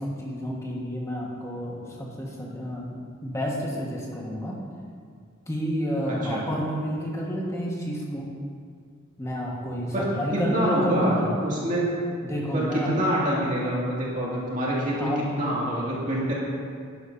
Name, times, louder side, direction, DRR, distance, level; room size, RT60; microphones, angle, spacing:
voice 1, 0.0-4.6 5.5-8.3 9.2-11.4 12.2-13.1 14.9-15.6, equal, 15° left, -3 dB, 1.5 m, -30 dB
voice 2, 6.1-6.4 9.9-10.1 10.5-11.8 12.5-15.1 15.4-16.3, equal, 40° right, -6 dB, 2.4 m, -26 dB
11.0 x 11.0 x 2.7 m, 2.1 s
head